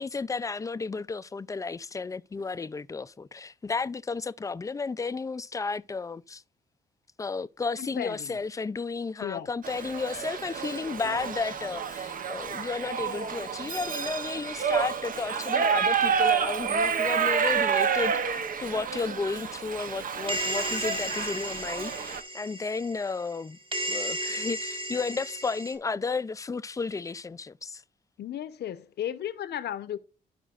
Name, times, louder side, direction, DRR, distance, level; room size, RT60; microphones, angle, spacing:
voice 1, 0.0-6.4 7.2-21.9 22.3-23.6 23.9-27.8, left 4 dB, 20° left, 0.3 m, -33 dB
voice 2, 7.8-8.4 9.2-9.5 28.2-30.0, left 10 dB, 80° left, 0.7 m, -34 dB
Shout / Livestock farm animals working animals, 9.6-22.2, right 6 dB, 55° right, 0.7 m, -29 dB
sound 1, 20.3-23.4 23.7-25.8, right 1 dB, 30° right, 1.3 m, -34 dB
12.5 x 5.1 x 2.4 m
cardioid pair, 105°, 17 cm